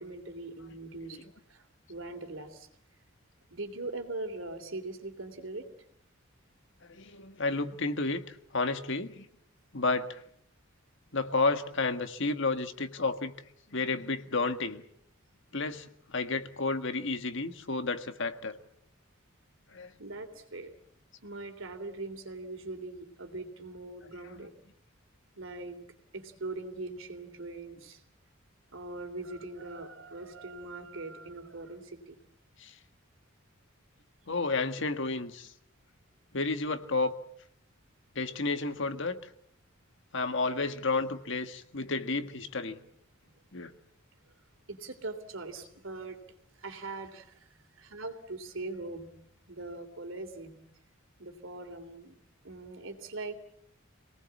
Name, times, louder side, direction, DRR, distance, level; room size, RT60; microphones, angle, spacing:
voice 1, 0.0-1.6 1.9-2.7 3.5-5.6 20.0-20.7 21.2-24.5 25.4-25.8 26.1-28.0 28.7-32.2 44.7-46.2 46.6-49.1 49.5-50.6 51.2-52.2 52.4-53.4, right 2 dB, 70° right, 7 dB, 3.2 m, -41 dB
voice 2, 6.9-9.2 9.7-10.2 11.1-13.3 13.7-14.8 15.5-18.6 19.7-19.9 24.4-24.5 32.6-32.7 34.3-35.5 36.3-37.1 38.1-39.2 40.1-42.8 43.5-43.7, left 3 dB, 65° left, 9 dB, 1.7 m, -31 dB
26.5 x 19.0 x 8.5 m, 0.71 s
head